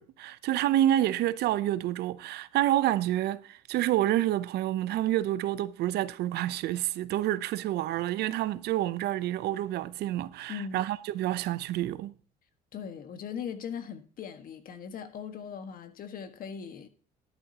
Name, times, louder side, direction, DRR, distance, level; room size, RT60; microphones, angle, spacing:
voice 1, 0.0-12.1, right 13 dB, 75° right, 0.7 m, -28 dB
voice 2, 10.5-10.8 12.7-16.9, left 7 dB, 55° left, 1.6 m, -39 dB
12.0 x 11.0 x 2.9 m
cardioid pair, 110°, 17 cm